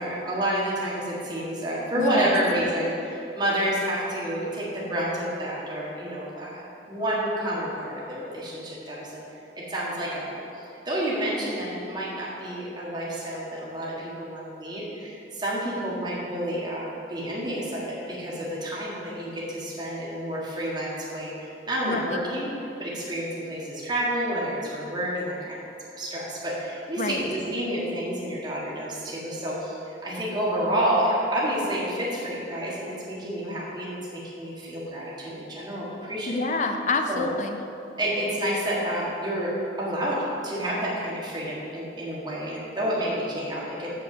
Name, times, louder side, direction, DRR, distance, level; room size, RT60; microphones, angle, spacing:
voice 1, 0.0-36.4 37.1-37.3 38.0-39.5 39.8-43.9, right 1 dB, 25° right, -7 dB, 1.7 m, -29 dB
voice 2, 2.0-2.3 21.8-22.2 27.0-27.2 36.3-37.6, left 3 dB, 45° left, 6 dB, 0.7 m, -27 dB
6.6 x 6.4 x 7.6 m, 2.8 s
head